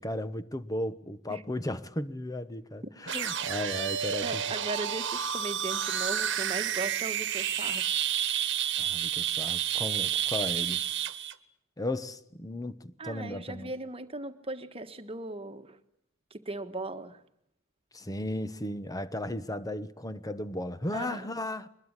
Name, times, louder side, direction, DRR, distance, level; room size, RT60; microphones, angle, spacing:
voice 1, 0.0-4.4 8.8-10.8 11.8-13.7 17.9-21.7, left 1 dB, 15° left, 1.1 m, -35 dB
sound 1, 3.1-11.3, right 10 dB, 60° right, 1.4 m, -30 dB
voice 2, 4.2-7.9 13.0-15.8 16.3-17.2 20.9-21.3, right 2 dB, 25° right, 1.5 m, -38 dB
23.0 x 20.5 x 9.8 m
head